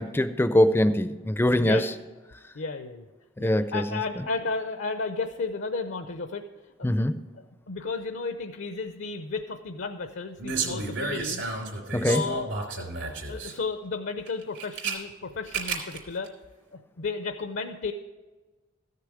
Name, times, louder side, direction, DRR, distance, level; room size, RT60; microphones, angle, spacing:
voice 1, 0.0-1.8 3.4-3.8 6.8-7.1 11.9-12.2, left 1 dB, 10° left, 11 dB, 0.4 m, -22 dB
voice 2, 2.5-3.1 3.4-6.4 6.8-6.9 7.7-11.5 12.1-12.9 13.3-16.3 16.7-17.9, left 4 dB, 70° left, 7 dB, 0.6 m, -33 dB
Small Box of Matches, 10.4-13.5 14.3-15.0 15.5-16.0 16.3-16.4, right 4 dB, 70° right, 2.8 m, -32 dB
14.5 x 6.7 x 5.0 m, 1.3 s
head